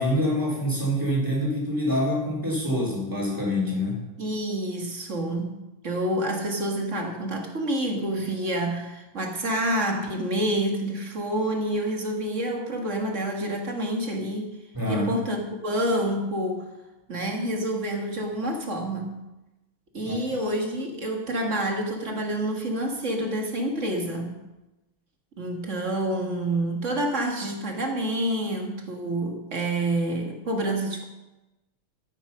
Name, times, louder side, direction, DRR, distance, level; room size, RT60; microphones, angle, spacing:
voice 1, 0.0-4.1 14.7-15.1 20.0-20.1, left 1 dB, 10° right, -4 dB, 3.8 m, -26 dB
voice 2, 4.2-5.5 5.8-14.5 14.9-16.6 17.1-19.2 19.9-24.3 25.4-31.1, right 1 dB, 35° right, 2 dB, 1.9 m, -28 dB
13.5 x 9.1 x 5.7 m, 1.0 s
omnidirectional pair, 2.4 m